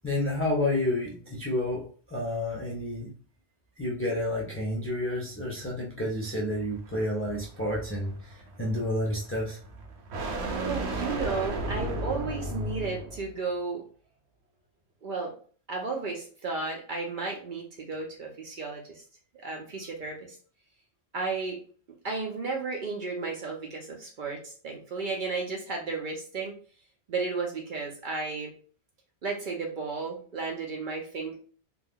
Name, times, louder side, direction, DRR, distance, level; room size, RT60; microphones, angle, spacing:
voice 1, 0.0-3.1 3.8-9.6, left 1 dB, 15° left, -4 dB, 0.4 m, -30 dB
sound 1, 6.2-13.3, right 2 dB, 80° right, 0.9 m, -35 dB
voice 2, 10.4-13.8 15.0-15.3 15.7-19.0 19.4-20.4 21.1-21.6 22.0-26.6 27.1-28.5 29.2-31.4, right 4 dB, 55° right, 0 dB, 0.6 m, -33 dB
2.5 x 2.2 x 3.4 m, 0.43 s
omnidirectional pair, 1.1 m